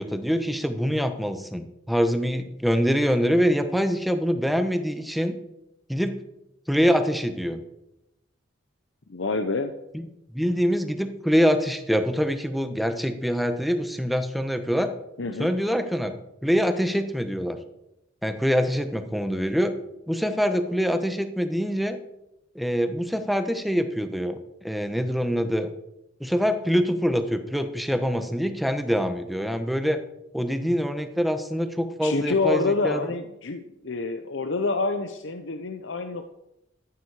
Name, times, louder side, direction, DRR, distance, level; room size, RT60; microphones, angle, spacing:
voice 1, 0.0-5.3 5.9-6.2 6.7-7.6 9.9-10.0 10.3-14.9 15.4-16.1 16.4-17.6 18.2-19.7 20.1-22.0 22.5-25.7 26.2-30.0 30.3-33.1, equal, ahead, 8 dB, 1.0 m, -24 dB
voice 2, 9.1-9.7 15.2-15.5 32.0-36.3, left 3 dB, 70° left, 7 dB, 0.8 m, -27 dB
14.0 x 9.4 x 4.9 m, 0.86 s
head